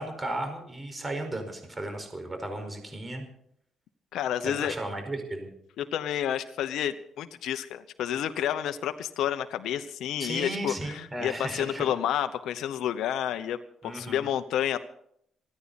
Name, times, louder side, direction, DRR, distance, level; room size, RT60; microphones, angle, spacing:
voice 1, 0.0-3.2 4.4-5.5 10.2-11.9 13.8-14.2, right 1 dB, 20° right, 5 dB, 4.9 m, -35 dB
voice 2, 4.1-4.8 5.8-14.8, left 10 dB, 80° left, 9 dB, 0.9 m, -30 dB
28.5 x 9.8 x 4.2 m, 0.71 s
cardioid pair, 90°, 0 cm